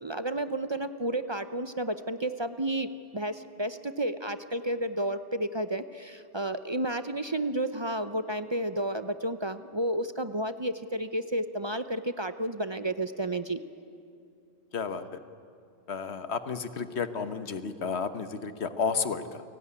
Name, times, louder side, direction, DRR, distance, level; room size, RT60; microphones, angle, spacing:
voice 1, 0.0-13.6, right 1 dB, 30° right, 11 dB, 0.7 m, -31 dB
voice 2, 14.7-15.2 15.9-19.4, left 5 dB, 90° left, 10 dB, 1.4 m, -32 dB
29.5 x 18.5 x 9.8 m, 2.5 s
omnidirectional pair, 1.1 m